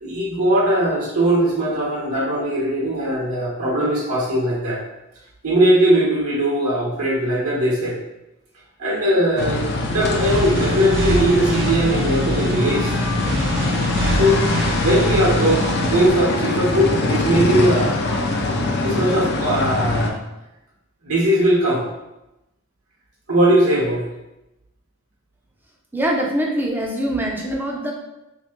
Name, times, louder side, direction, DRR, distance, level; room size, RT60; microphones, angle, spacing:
voice 1, 0.0-4.8 5.4-7.9 8.8-13.0 14.2-14.4 14.8-17.9 18.8-20.1 21.0-21.8 23.3-24.1, right 1 dB, 80° right, -5 dB, 1.4 m, -19 dB
sound 1, 9.4-20.1, left 2 dB, 50° left, 0.5 m, -23 dB
sound 2, 10.0-16.1, right 1 dB, 55° right, 0.9 m, -25 dB
voice 2, 25.9-27.9, right 1 dB, 10° right, -1 dB, 0.5 m, -23 dB
3.4 x 3.1 x 3.2 m, 0.94 s
head